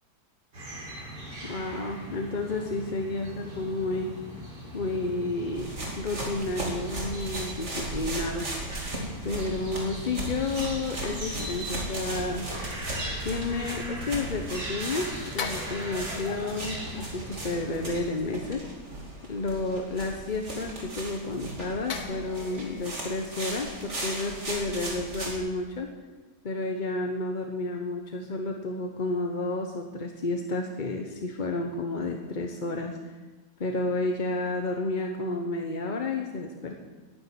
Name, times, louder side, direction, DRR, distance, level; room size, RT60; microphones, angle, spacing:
sound 1, 0.5-18.0, right 1 dB, 85° right, 4.9 m, -40 dB
voice 1, 1.5-4.2 4.7-8.8 9.2-12.5 13.2-18.6 19.3-25.9 26.4-33.1 33.6-36.7, left 2 dB, 35° left, 3 dB, 0.9 m, -31 dB
sound 2, 5.5-25.4, right 1 dB, 45° right, 3.0 m, -37 dB
sound 3, 15.4-18.1 21.9-25.1 25.4-25.6, left 5 dB, 65° left, 1.6 m, -41 dB
10.5 x 10.5 x 9.4 m, 1.3 s
omnidirectional pair, 1.8 m